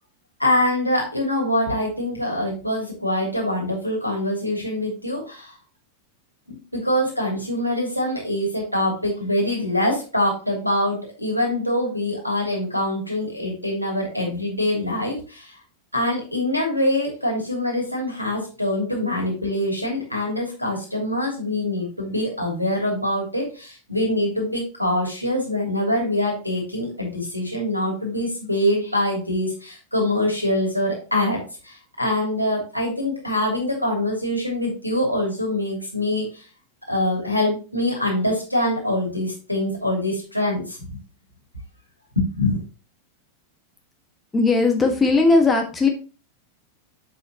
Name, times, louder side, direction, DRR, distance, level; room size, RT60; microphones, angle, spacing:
voice 1, 0.4-5.5 6.5-15.6 15.9-36.4 36.9-40.8 42.2-42.6, left 1 dB, 90° left, 0 dB, 3.0 m, -24 dB
voice 2, 44.3-45.9, left 3 dB, 15° left, 3 dB, 1.5 m, -18 dB
7.4 x 6.6 x 2.9 m, 0.35 s
figure-of-eight pair, 90°, 0 cm